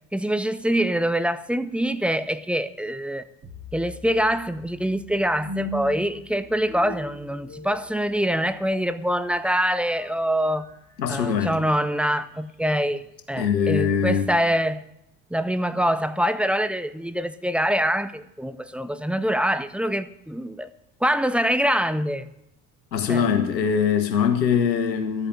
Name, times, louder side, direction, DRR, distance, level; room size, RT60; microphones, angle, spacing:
voice 1, 0.1-3.2 3.7-10.7 11.1-14.8 15.3-20.7 21.0-22.3 23.1-23.2, equal, 5° right, 0.4 m, -24 dB
sound 1, 3.4-12.5, left 2 dB, 40° right, 6.4 m, -40 dB
voice 2, 11.0-11.6 13.4-14.3 22.9-25.3, left 7 dB, 80° left, 1.7 m, -22 dB
12.5 x 8.5 x 8.4 m
figure-of-eight pair, 60°, 50 cm